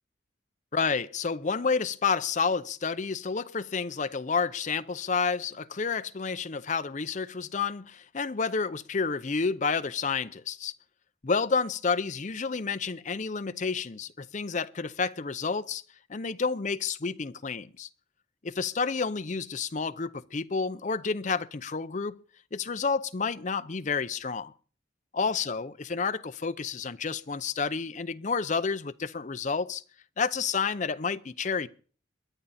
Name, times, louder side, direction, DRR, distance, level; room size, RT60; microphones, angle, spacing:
voice 1, 0.7-10.7 11.2-15.8 16.1-17.9 18.4-22.2 22.5-24.5 25.1-29.8 30.2-31.7, left 5 dB, 40° left, 0.6 m, -30 dB
22.5 x 10.0 x 4.2 m
head